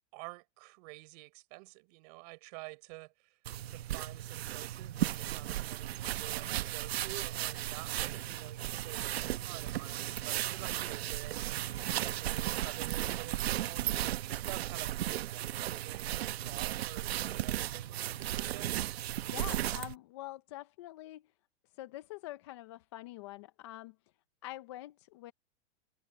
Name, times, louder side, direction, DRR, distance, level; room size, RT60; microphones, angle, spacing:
voice 1, 0.1-3.4 3.7-11.6 12.2-18.7, right 28 dB, 35° right, 4.8 m, -49 dB
sound 1, 3.5-19.9, right 13 dB, 70° right, 1.0 m, -35 dB
Bird vocalization bird call bird song, 12.3-14.9, left 14 dB, 75° left, 7.7 m, -66 dB
voice 2, 19.3-21.2 21.8-24.0 24.4-25.3, left 16 dB, 25° left, 0.5 m, -45 dB
supercardioid pair, 175°, 32 cm